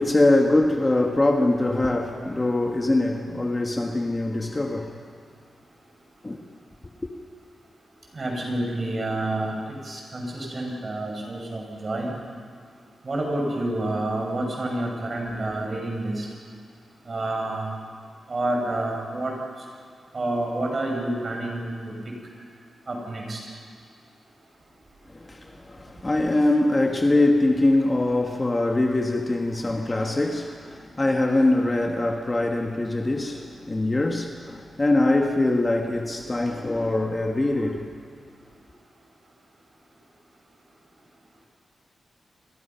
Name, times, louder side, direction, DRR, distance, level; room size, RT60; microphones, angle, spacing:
voice 1, 0.0-5.0 6.2-6.4 25.1-37.9, left 2 dB, 20° left, 1.5 m, -23 dB
voice 2, 8.1-9.5 9.8-12.1 13.0-16.2 17.1-17.7 18.3-19.3 20.1-21.9 22.9-23.4, right 1 dB, 35° right, 6.4 m, -28 dB
30.0 x 22.5 x 5.8 m
wide cardioid pair, 150°, 0 cm